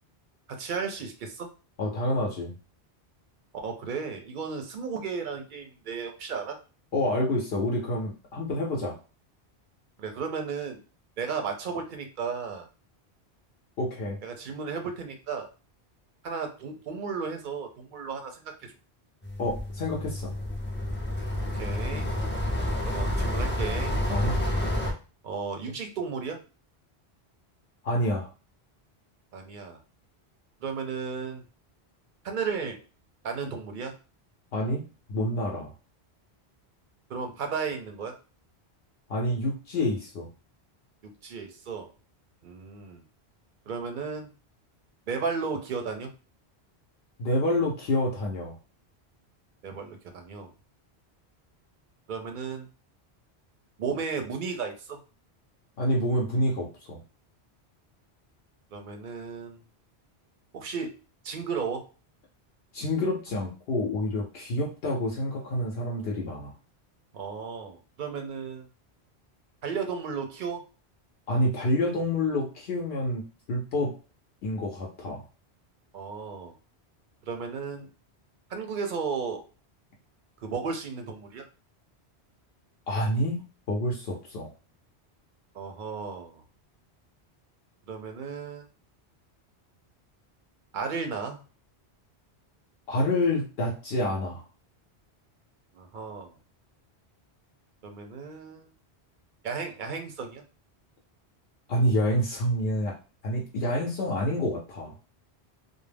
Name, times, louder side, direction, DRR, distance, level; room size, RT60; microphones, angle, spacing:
voice 1, 0.5-1.5 3.6-6.6 10.0-10.8 11.2-12.7 14.2-15.5 16.2-18.7 21.5-22.1 22.9-23.9 25.2-26.4 29.3-29.8 30.6-31.4 32.2-32.8 33.2-33.9 37.1-38.1 41.0-41.9 42.4-43.0 43.7-44.3 45.1-46.1 49.6-50.5 52.1-52.7 53.8-55.0 58.7-59.6 60.5-60.9 61.2-61.9 67.1-68.7 69.6-70.6 75.9-76.5 77.2-77.9 78.5-79.4 80.4-81.4 85.5-86.4 87.9-88.7 90.7-91.4 95.7-96.3 97.8-98.7 99.4-100.4, right 5 dB, 60° right, 5 dB, 0.6 m, -34 dB
voice 2, 1.8-2.5 6.9-9.0 13.8-14.2 19.4-20.3 24.1-24.4 27.8-28.3 34.5-34.8 35.1-35.7 39.1-40.3 47.2-48.6 55.8-57.0 62.7-66.5 71.3-74.0 74.4-75.2 82.9-83.4 83.7-84.5 92.9-94.4 101.7-103.0 103.2-104.9, left 1 dB, 70° left, -1 dB, 0.8 m, -28 dB
sound 1, 19.2-24.9, left 1 dB, 15° left, 0.4 m, -29 dB
2.3 x 2.1 x 3.2 m, 0.33 s
omnidirectional pair, 1.1 m